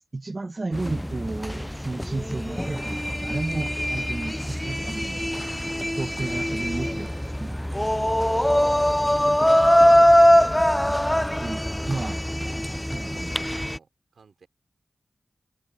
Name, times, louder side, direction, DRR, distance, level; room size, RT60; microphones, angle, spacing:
voice 1, 0.1-5.3 5.9-7.7 11.4-12.2 12.9-13.3, right 3 dB, 45° right, 1.4 m, -33 dB
sound 1, 0.7-13.8, equal, 10° left, 0.3 m, -22 dB
sound 2, 0.9-3.0 3.4-3.5, right 1 dB, 10° right, 3.3 m, -43 dB
voice 2, 11.5-12.4 12.7-14.5, right 5 dB, 80° right, 4.4 m, -55 dB
cardioid pair, 45°, 0 cm